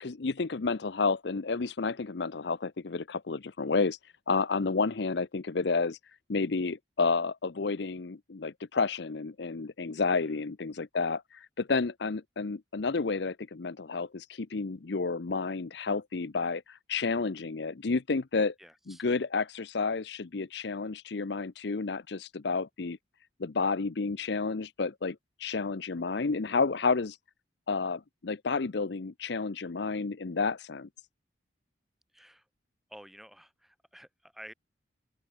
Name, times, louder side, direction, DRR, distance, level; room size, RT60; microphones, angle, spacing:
voice 1, 0.0-4.0 4.3-6.0 6.3-18.5 18.9-23.0 23.4-27.2 27.7-30.9, left 4 dB, 60° left, 0.6 m, -31 dB
voice 2, 18.6-19.0 32.1-32.5 32.9-34.5, equal, ahead, 4.9 m, -51 dB
open air
head